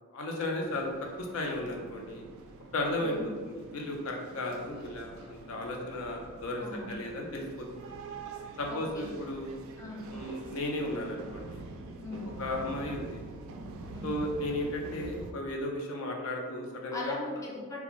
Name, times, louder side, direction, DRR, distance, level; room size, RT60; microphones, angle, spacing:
voice 1, 0.1-0.9 1.2-2.2 2.7-3.2 3.4-7.7 8.6-9.6 10.1-11.6 12.4-13.2 14.0-17.2, left 1 dB, 75° left, 0 dB, 0.5 m, -35 dB
sound 1, 0.6-15.3, right 3 dB, 65° right, 0.3 m, -46 dB
voice 2, 8.7-9.1 9.8-10.1 12.0-12.3 13.9-14.2 16.9-17.8, left 2 dB, 15° left, -3 dB, 0.4 m, -39 dB
2.4 x 2.3 x 3.0 m, 1.5 s
head